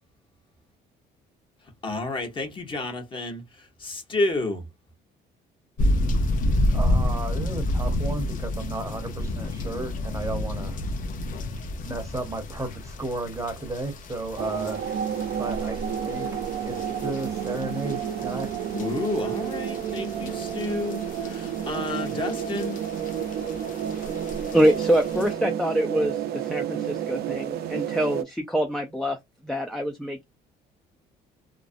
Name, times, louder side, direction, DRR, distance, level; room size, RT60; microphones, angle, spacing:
voice 1, 1.8-3.4 3.8-4.6 18.7-21.0 21.2-22.8, left 2 dB, 30° left, 0.9 m, -30 dB
sound 1, 5.8-25.3, left 1 dB, 55° left, 0.6 m, -30 dB
voice 2, 6.7-10.8 11.8-14.8 15.4-16.3 16.6-18.6, right 2 dB, 20° right, 0.7 m, -33 dB
sound 2, 14.4-28.2, right 9 dB, 65° right, 0.4 m, -30 dB
voice 3, 24.5-29.2 29.4-30.2, right 1 dB, ahead, 0.3 m, -25 dB
2.4 x 2.0 x 2.4 m
cardioid pair, 110°, 17 cm